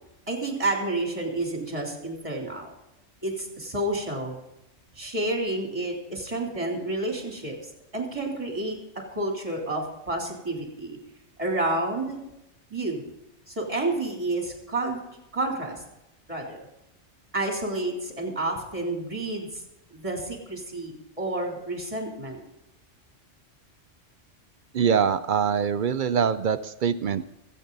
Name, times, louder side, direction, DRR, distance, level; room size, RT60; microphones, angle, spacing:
voice 1, 0.3-2.7 3.2-4.4 4.9-7.6 7.9-8.8 9.1-11.0 11.4-12.2 12.7-13.0 13.5-15.0 15.3-15.8 16.3-16.6 17.3-19.6 19.9-22.4, right 2 dB, 25° right, 0 dB, 3.2 m, -30 dB
voice 2, 24.7-27.3, right 7 dB, 60° right, 12 dB, 0.5 m, -24 dB
22.5 x 8.5 x 4.0 m, 0.88 s
omnidirectional pair, 1.3 m